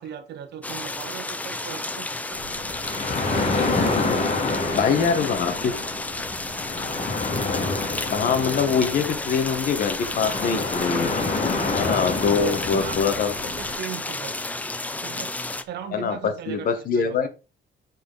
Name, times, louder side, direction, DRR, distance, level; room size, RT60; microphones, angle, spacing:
voice 1, 0.0-2.5 3.3-5.1 5.5-5.6 11.8-14.5 15.0-15.3 15.7-17.3, right 9 dB, 65° right, 1.2 m, -38 dB
sound 1, 0.6-15.6, left 2 dB, 10° left, 0.5 m, -32 dB
sound 2, 2.3-13.8, left 3 dB, 35° left, 2.3 m, -28 dB
voice 2, 4.7-5.7 8.1-11.1 11.7-13.3 15.9-17.3, left 6 dB, 50° left, 1.3 m, -23 dB
8.6 x 4.5 x 3.9 m
cardioid pair, 165°, 19 cm